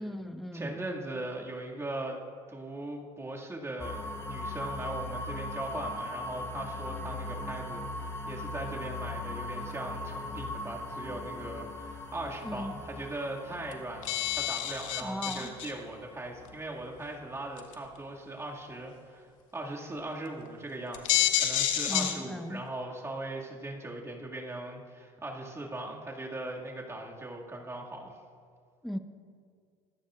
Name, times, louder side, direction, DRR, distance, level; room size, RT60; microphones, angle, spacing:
voice 1, 0.0-0.8 12.4-12.8 15.0-15.5 21.9-22.6 28.8-29.0, equal, ahead, 6 dB, 1.2 m, -37 dB
voice 2, 0.5-2.2 2.5-19.3 19.5-28.2, right 2 dB, 15° right, -2 dB, 2.2 m, -39 dB
sound 1, 3.8-17.6, left 2 dB, 15° left, 1.8 m, -39 dB
sound 2, 13.4-13.5 13.7-13.8 14.0-15.7 16.5-16.6 17.6-17.9 20.0-20.1 20.5-20.6 20.9-22.1, left 12 dB, 90° left, 1.5 m, -28 dB
24.5 x 14.0 x 2.5 m, 2.1 s
supercardioid pair, 85°, 16 cm